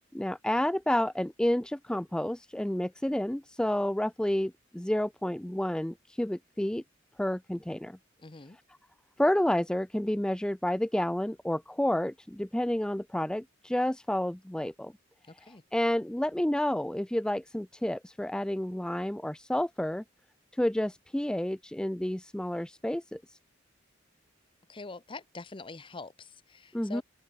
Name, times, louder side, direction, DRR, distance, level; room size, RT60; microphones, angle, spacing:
voice 1, 0.1-6.8 7.2-8.0 9.2-14.9 15.4-20.0 20.5-23.4 26.7-27.0, left 1 dB, 5° left, 0.3 m, -30 dB
voice 2, 8.2-8.6 15.3-15.6 24.7-27.0, left 3 dB, 25° left, 0.8 m, -44 dB
open air
head